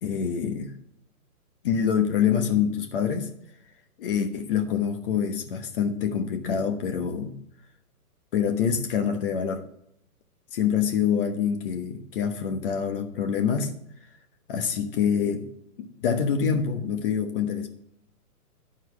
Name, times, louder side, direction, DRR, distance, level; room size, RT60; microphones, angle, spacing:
voice 1, 0.0-0.7 1.6-3.3 4.0-7.3 8.3-9.6 10.5-13.7 14.5-15.5 15.8-17.7, left 7 dB, 35° left, 5 dB, 1.2 m, -26 dB
11.5 x 4.5 x 6.0 m, 0.72 s
hypercardioid pair, 150°, 46 cm